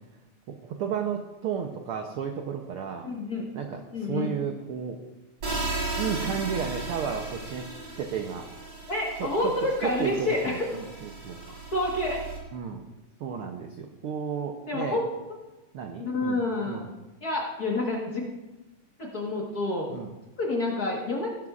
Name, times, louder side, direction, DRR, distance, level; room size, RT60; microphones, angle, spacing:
voice 1, 0.5-3.1 3.5-3.8 4.1-5.0 6.0-7.7 8.0-8.5 9.2-9.5 9.8-11.4 12.5-12.8 13.2-15.0 15.7-16.9 19.9-20.1, right 7 dB, 80° right, 3 dB, 1.2 m, -33 dB
voice 2, 3.0-3.5 3.9-4.4 8.9-10.5 11.7-12.2 14.7-15.1 16.0-16.9 17.2-18.2 19.0-19.9 20.4-21.3, left 2 dB, 45° left, -2 dB, 1.4 m, -28 dB
sound 1, 5.4-12.4, right 3 dB, 55° right, 4.6 m, -36 dB
15.5 x 12.0 x 2.4 m, 1.1 s
omnidirectional pair, 3.4 m